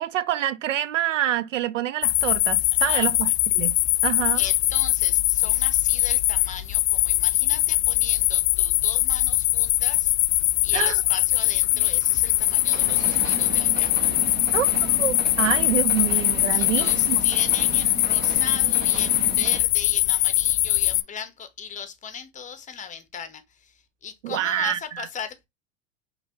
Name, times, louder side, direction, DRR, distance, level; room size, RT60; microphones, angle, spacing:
voice 1, 0.0-3.3 3.5-4.4 10.7-11.0 14.5-14.7 15.0-17.2 24.2-25.1, right 12 dB, 90° right, 0.5 m, -26 dB
sound 1, 2.0-21.0, left 17 dB, 60° left, 0.5 m, -22 dB
voice 2, 2.9-3.3 4.3-13.9 14.4-14.5 16.5-25.5, left 7 dB, 20° left, 0.8 m, -38 dB
sound 2, 10.3-19.6, right 5 dB, 25° right, 0.7 m, -36 dB
5.1 x 3.0 x 2.7 m
hypercardioid pair, 100°, 36 cm